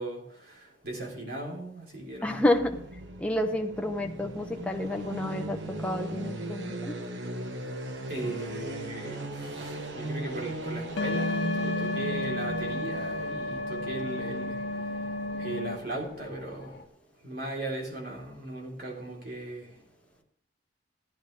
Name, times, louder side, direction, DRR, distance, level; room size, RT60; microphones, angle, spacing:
voice 1, 0.0-2.5 8.1-14.6 15.4-16.7 17.2-19.7, right 2 dB, 55° right, -1 dB, 3.6 m, -37 dB
voice 2, 2.2-2.6 3.2-7.0, left 1 dB, 5° left, 3 dB, 1.0 m, -29 dB
sound 1, 2.4-16.2, right 1 dB, 75° right, 1.1 m, -38 dB
sound 2, 8.9-16.8, left 2 dB, 60° left, 1.5 m, -48 dB
sound 3, 11.0-15.8, left 2 dB, 80° left, 0.8 m, -32 dB
15.5 x 10.0 x 3.4 m, 0.63 s
head